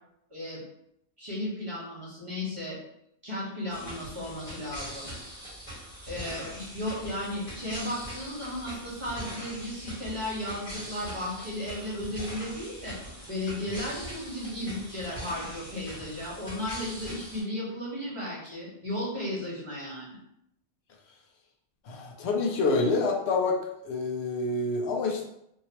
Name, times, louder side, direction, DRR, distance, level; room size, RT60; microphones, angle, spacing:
voice 1, 0.3-0.6 1.2-2.8 3.2-5.1 6.1-13.0 13.3-20.2, left 1 dB, 30° right, -7 dB, 1.2 m, -35 dB
sound 1, 3.7-17.4, right 1 dB, 35° left, 1.6 m, -42 dB
voice 2, 21.8-25.3, left 3 dB, 85° left, 1 dB, 0.9 m, -27 dB
2.8 x 2.8 x 2.9 m, 0.77 s
omnidirectional pair, 1.1 m